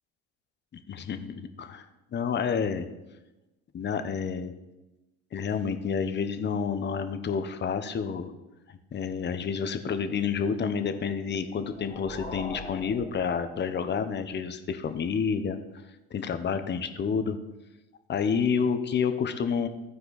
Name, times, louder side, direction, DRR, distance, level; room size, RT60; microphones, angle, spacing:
voice 1, 0.7-1.8 2.1-2.9 3.7-4.5 5.3-8.3 8.7-15.6 16.1-17.4 18.1-19.7, left 6 dB, 35° left, 10 dB, 1.0 m, -29 dB
sound 1, 11.4-14.0, left 2 dB, 20° left, 2.1 m, -42 dB
14.0 x 4.8 x 4.1 m, 1.0 s
supercardioid pair, 80°, 31 cm